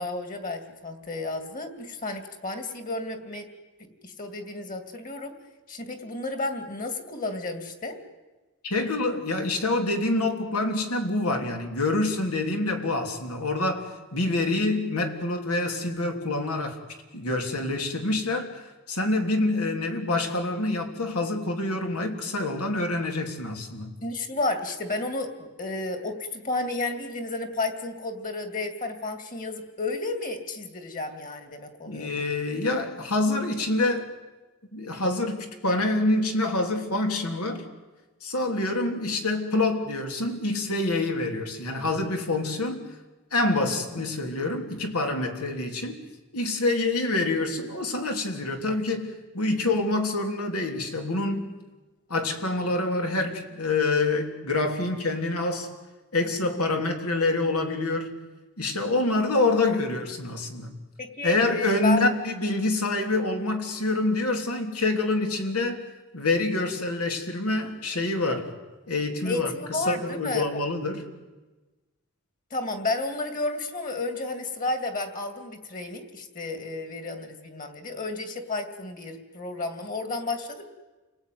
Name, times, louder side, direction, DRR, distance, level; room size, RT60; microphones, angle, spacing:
voice 1, 0.0-3.5 4.0-5.4 5.7-8.0 24.0-32.1 61.0-62.0 69.2-70.6 72.5-80.6, left 2 dB, 35° left, 2.6 m, -32 dB
voice 2, 8.6-16.8 17.1-18.6 18.9-23.9 31.9-34.1 34.7-37.6 38.2-42.8 43.3-46.0 46.3-51.5 52.1-55.7 56.1-58.2 58.6-60.7 61.2-65.8 66.1-68.5 68.9-71.0, left 2 dB, 90° left, 3.3 m, -26 dB
29.0 x 19.0 x 9.5 m
head